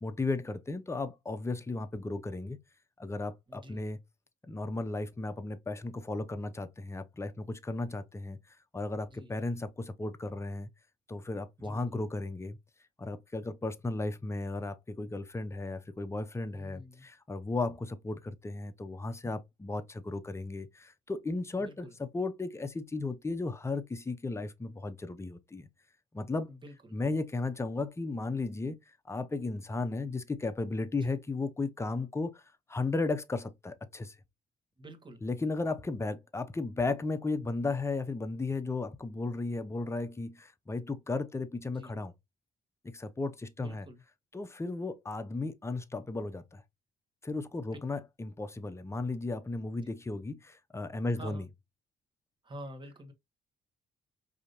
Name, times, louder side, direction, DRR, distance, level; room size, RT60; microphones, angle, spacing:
voice 1, 0.0-2.6 3.0-4.0 4.5-8.4 8.7-10.7 11.1-12.6 13.0-25.7 26.1-26.5 26.9-28.8 29.1-32.4 32.7-34.1 35.2-42.1 42.8-43.9 44.3-46.6 47.2-51.5, left 3 dB, 15° left, 0.6 m, -35 dB
voice 2, 3.5-3.8 9.1-9.3 11.6-12.0 16.5-17.1 21.6-22.0 26.5-26.9 31.0-31.1 34.8-35.2 41.7-42.0 43.6-44.0 47.5-47.7 49.8-49.9 51.2-51.5 52.4-53.1, equal, 25° right, 1.3 m, -48 dB
5.0 x 2.8 x 2.6 m
cardioid pair, 90°, 20 cm